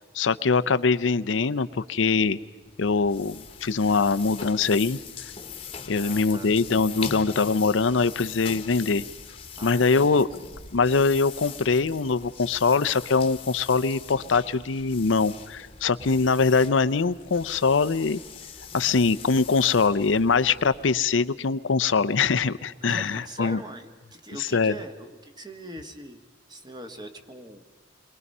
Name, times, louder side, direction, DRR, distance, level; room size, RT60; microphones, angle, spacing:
voice 1, 0.1-2.4 2.8-5.0 5.9-9.0 9.6-10.3 10.7-18.2 18.7-23.6 24.4-24.7, left 4 dB, 80° left, 13 dB, 0.6 m, -23 dB
sound 1, 2.6-21.1, left 7 dB, 30° left, 1.2 m, -42 dB
voice 2, 5.9-6.6 9.6-10.2 22.8-26.2 26.5-27.6, right 1 dB, 20° right, 6 dB, 1.5 m, -42 dB
28.5 x 22.5 x 5.5 m, 1.3 s
head